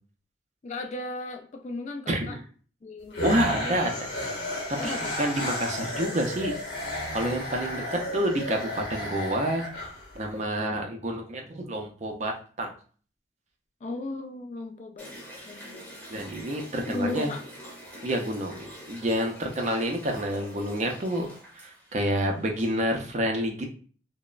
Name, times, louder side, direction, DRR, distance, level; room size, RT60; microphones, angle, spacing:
voice 1, 0.6-2.4 2.8-3.3 3.6-3.8 4.8-5.1 13.8-15.1 15.5-15.9 16.8-17.5, left 2 dB, 40° left, 4 dB, 0.3 m, -35 dB
voice 2, 2.1-2.4 3.2-4.0 4.8-6.5 6.8-9.6 10.2-12.7 16.1-17.3 18.0-21.3 21.5-23.7, right 1 dB, 35° right, 2 dB, 0.4 m, -28 dB
sound 1, 3.1-10.3, left 1 dB, 65° left, 0.9 m, -33 dB
sound 2, 15.0-23.0, equal, 10° left, 0.7 m, -46 dB
2.9 x 2.0 x 2.3 m, 0.41 s
head